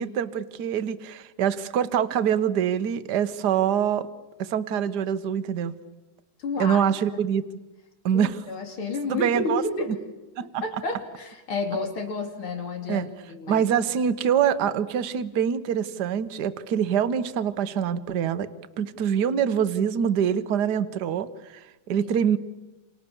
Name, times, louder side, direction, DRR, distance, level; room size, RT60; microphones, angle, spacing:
voice 1, 0.0-4.1 4.4-5.7 6.6-7.4 8.0-8.4 9.1-9.6 10.4-10.6 12.9-13.1 13.5-18.5 18.8-22.4, right 8 dB, 60° right, 13 dB, 1.5 m, -25 dB
voice 2, 6.4-6.9 8.1-9.9 10.6-13.6 22.0-22.1, left 3 dB, 85° left, 4 dB, 3.9 m, -31 dB
29.0 x 27.0 x 7.0 m, 1.2 s
omnidirectional pair, 2.3 m